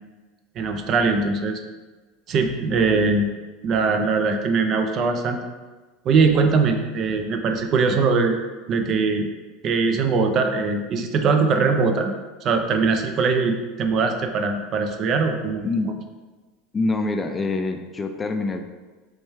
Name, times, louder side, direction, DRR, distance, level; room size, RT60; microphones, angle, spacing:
voice 1, 0.6-1.6 2.3-3.3 3.6-5.4 6.1-8.4 8.7-9.3 9.6-12.1 12.4-15.7, right 4 dB, 45° right, 5 dB, 0.4 m, -21 dB
voice 2, 15.6-16.0 16.7-18.6, left 3 dB, 25° left, 6 dB, 0.3 m, -25 dB
3.2 x 3.1 x 3.3 m, 1.3 s
hypercardioid pair, 100°, 0 cm